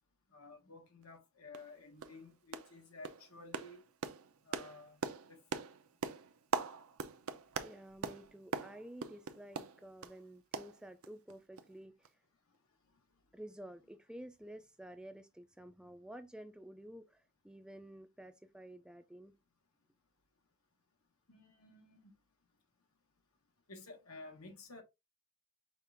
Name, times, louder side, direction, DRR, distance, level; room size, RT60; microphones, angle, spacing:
voice 1, 0.3-3.8 4.4-5.0 5.3-5.7 21.3-22.1 23.7-24.8, left 3 dB, 85° left, 1.2 m, -53 dB
sound 1, 1.0-1.1 1.5-1.7 2.0-2.2 2.5-2.8 3.0-10.2 10.5-11.3 11.6-11.7 12.0-12.1, right 5 dB, 75° right, 0.5 m, -42 dB
voice 2, 7.6-12.1 13.3-19.3, right 1 dB, 5° right, 0.3 m, -51 dB
5.6 x 2.4 x 3.3 m
head